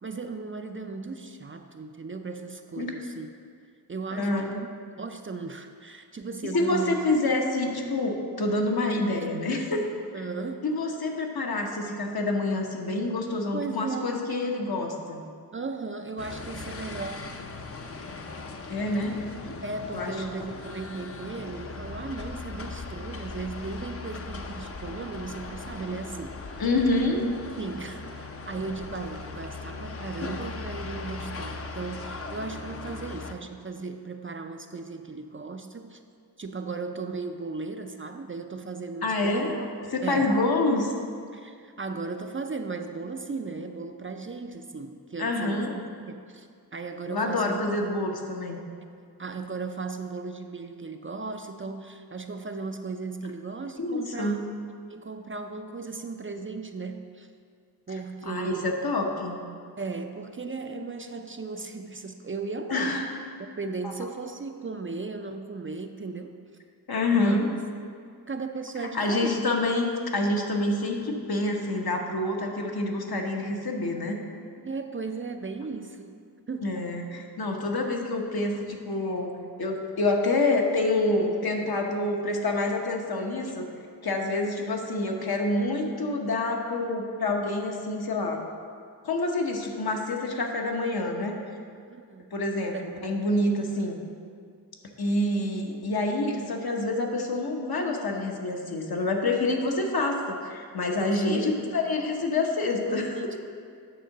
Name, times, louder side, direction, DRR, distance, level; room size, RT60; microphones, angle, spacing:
voice 1, 0.0-3.3 3.9-4.7 5.0-7.0 10.1-10.7 13.5-14.4 15.5-17.4 19.6-26.7 27.6-36.0 36.4-39.5 40.0-40.3 41.3-47.6 49.2-54.4 54.9-57.3 57.9-58.8 59.8-63.0 63.4-66.4 67.1-67.6 68.3-69.5 74.6-76.1 76.5-76.9 91.9-92.4 92.7-92.9 101.3-101.6 102.9-103.4, right 4 dB, 30° right, 6 dB, 0.4 m, -36 dB
voice 2, 6.4-9.8 10.1-10.2 10.6-15.2 18.7-19.2 19.9-20.1 26.6-27.2 39.0-39.6 39.9-40.9 45.2-45.7 47.1-48.6 53.8-54.4 58.2-59.4 62.7-63.2 66.9-67.5 68.8-74.2 76.6-79.3 79.6-83.7 84.0-88.4 89.0-91.4 92.3-94.0 95.0-103.3, left 2 dB, 65° left, 1 dB, 1.0 m, -27 dB
sound 1, 16.2-33.3, left 3 dB, 35° left, 0.6 m, -39 dB
8.9 x 3.7 x 6.5 m, 2.2 s
cardioid pair, 55°, 40 cm